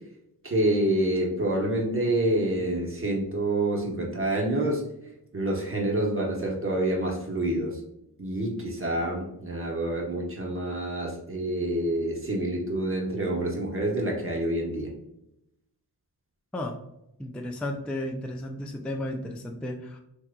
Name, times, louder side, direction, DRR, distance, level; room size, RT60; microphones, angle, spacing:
voice 1, 0.4-4.8 5.3-7.8 8.2-14.9, right 1 dB, 30° right, -1 dB, 1.0 m, -27 dB
voice 2, 17.2-20.0, left 1 dB, 5° left, 2 dB, 0.3 m, -33 dB
3.6 x 2.9 x 2.2 m, 0.84 s
cardioid pair, 50°, 42 cm